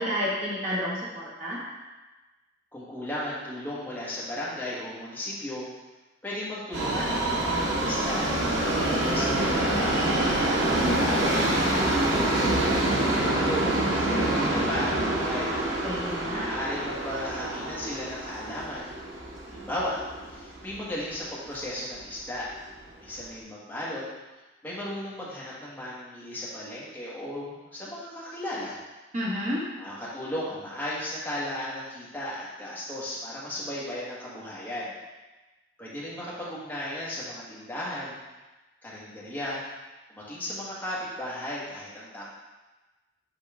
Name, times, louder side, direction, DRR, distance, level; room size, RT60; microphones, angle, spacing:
voice 1, 0.0-1.6 15.8-16.4 29.1-29.6, equal, 35° right, -8 dB, 1.9 m, -30 dB
voice 2, 2.7-5.7 6.2-9.9 10.7-11.4 12.1-15.6 16.3-19.0 19.5-20.0 20.3-22.5 23.0-24.0 24.6-28.8 29.8-34.9 35.8-38.2 38.8-39.6 40.1-42.2, left 1 dB, 10° left, -8 dB, 1.5 m, -35 dB
Subway metro underground, 6.7-20.8 21.2-21.3 22.1-22.2 22.5-22.6 23.2-23.3, right 1 dB, 80° right, 1.1 m, -26 dB
6.9 x 4.4 x 3.6 m, 1.2 s
head